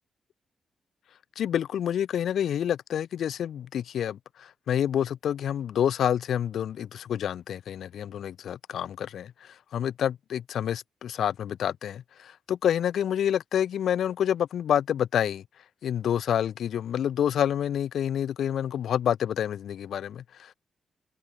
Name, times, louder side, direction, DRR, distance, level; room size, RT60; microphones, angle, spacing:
voice 1, 1.4-15.4 15.8-20.5, left 9 dB, 75° left, 2.3 m, -28 dB
wide cardioid pair, 150°, 0 cm